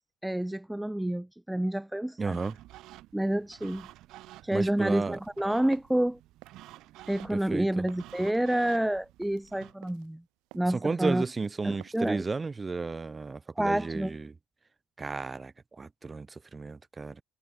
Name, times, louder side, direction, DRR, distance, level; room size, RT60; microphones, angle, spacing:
voice 1, 0.2-2.4 3.1-3.9 4.4-6.2 7.1-10.2 10.5-11.2 11.6-12.2 13.6-14.2, right 1 dB, 5° right, 2.2 m, -29 dB
voice 2, 2.2-2.6 4.5-5.2 7.3-7.9 10.7-14.3 15.0-17.2, right 4 dB, 20° right, 1.5 m, -33 dB
sound 1, 2.3-9.7, right 16 dB, 65° right, 4.7 m, -51 dB
sound 2, 5.0-12.1, right 26 dB, 80° right, 7.2 m, -55 dB
cardioid pair, 120°, 0 cm